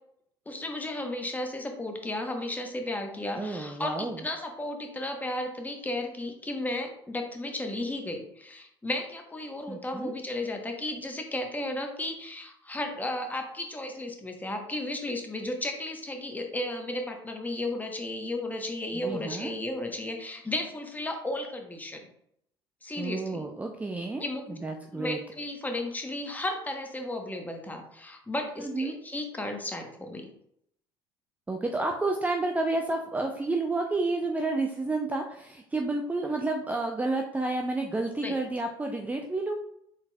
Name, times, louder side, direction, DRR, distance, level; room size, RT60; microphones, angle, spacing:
voice 1, 0.5-22.0 22.8-23.4 24.2-24.6 24.9-30.3 38.2-38.4, left 1 dB, 15° left, 3 dB, 0.9 m, -34 dB
voice 2, 3.4-4.2 9.7-10.1 18.9-19.6 23.0-25.2 28.6-28.9 31.5-39.5, right 2 dB, 10° right, 3 dB, 0.4 m, -30 dB
4.1 x 4.1 x 2.2 m, 0.72 s
hypercardioid pair, 70°, 12 cm